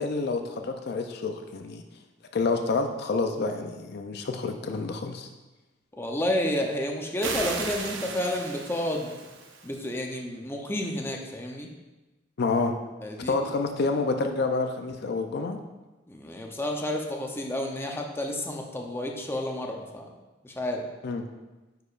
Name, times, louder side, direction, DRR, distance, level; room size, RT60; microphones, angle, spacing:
voice 1, 0.0-1.8 2.3-5.3 12.4-12.7 13.3-15.6 21.0-21.2, left 3 dB, 60° left, 5 dB, 0.5 m, -28 dB
voice 2, 5.9-9.1 9.6-11.7 13.0-13.4 16.1-20.1 20.4-20.8, left 1 dB, 15° left, 1 dB, 0.6 m, -30 dB
sound 1, 7.2-9.8, right 4 dB, 85° right, 0.7 m, -35 dB
9.4 x 4.8 x 2.4 m, 1.1 s
head